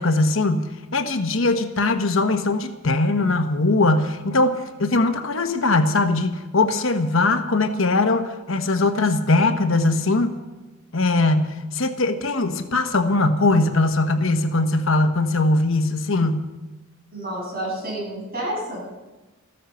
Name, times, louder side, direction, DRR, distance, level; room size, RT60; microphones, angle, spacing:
voice 1, 0.0-10.4 10.9-16.5, left 2 dB, 60° left, 7 dB, 1.1 m, -21 dB
voice 2, 17.1-18.8, right 1 dB, 45° right, -4 dB, 6.9 m, -29 dB
14.0 x 13.0 x 6.8 m, 1.1 s
head